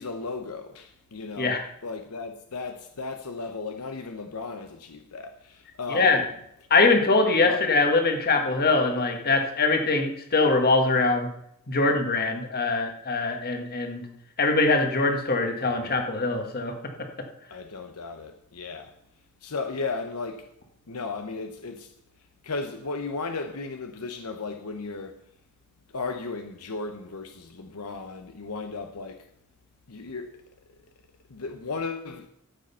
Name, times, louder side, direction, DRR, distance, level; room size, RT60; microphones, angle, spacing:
voice 1, 0.0-1.5 1.8-6.2 7.4-7.7 17.5-18.9 19.4-20.5 20.9-21.9 22.4-25.2 25.9-29.2 29.9-30.4 31.3-32.3, left 4 dB, 80° left, 0.9 m, -35 dB
voice 2, 5.9-6.2 6.7-11.3 11.7-14.0 14.4-16.7, left 3 dB, 45° left, 1.7 m, -22 dB
13.5 x 7.7 x 5.6 m
head